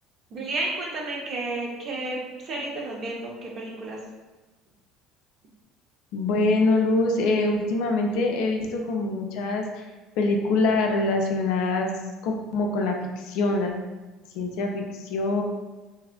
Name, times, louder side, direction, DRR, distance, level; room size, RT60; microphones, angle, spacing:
voice 1, 0.3-4.0, right 2 dB, 45° right, -1 dB, 0.6 m, -32 dB
voice 2, 6.1-9.9 10.2-11.9 12.2-13.7 14.3-15.4, left 2 dB, 65° left, 2 dB, 0.3 m, -24 dB
2.6 x 2.3 x 2.4 m, 1.2 s
hypercardioid pair, 65°, 0 cm